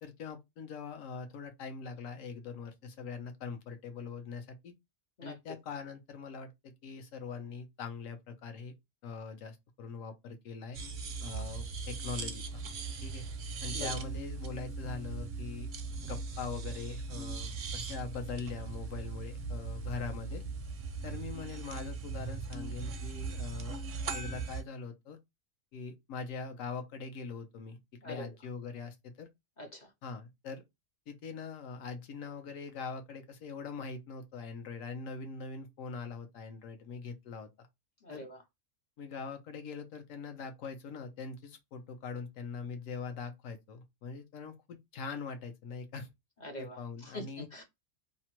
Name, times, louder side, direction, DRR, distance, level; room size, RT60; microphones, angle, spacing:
voice 1, 0.0-4.7 5.2-8.7 9.0-10.8 11.2-12.6 13.0-13.3 13.6-15.7 16.0-20.4 21.0-23.8 24.1-25.2 25.7-27.8 28.0-29.3 30.0-30.6 31.1-37.7 38.1-38.3 39.0-46.1 46.6-47.5, left 5 dB, 80° left, 1.1 m, -42 dB
sound 1, 10.7-24.6, right 4 dB, 60° right, 0.5 m, -39 dB
voice 2, 29.6-29.9 38.0-38.4 46.4-46.8 47.1-47.6, left 1 dB, 55° left, 0.5 m, -43 dB
2.8 x 2.1 x 2.9 m
omnidirectional pair, 1.4 m